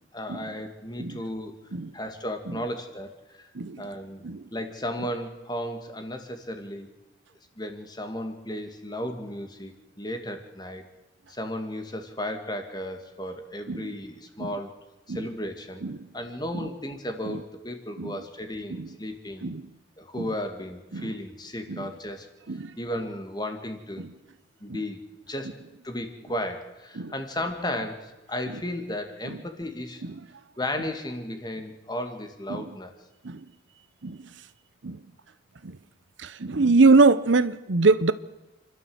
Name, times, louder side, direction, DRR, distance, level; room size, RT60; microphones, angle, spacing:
voice 1, 0.1-1.5 1.9-3.5 3.8-4.2 4.5-6.9 7.6-10.8 11.3-14.8 15.1-15.8 16.1-19.5 20.0-22.3 22.8-24.0 24.6-25.6 25.8-30.0 30.6-33.0, left 1 dB, 20° left, 2.1 m, -34 dB
voice 2, 36.4-38.1, right 3 dB, 70° right, 0.8 m, -21 dB
29.0 x 12.5 x 7.9 m
head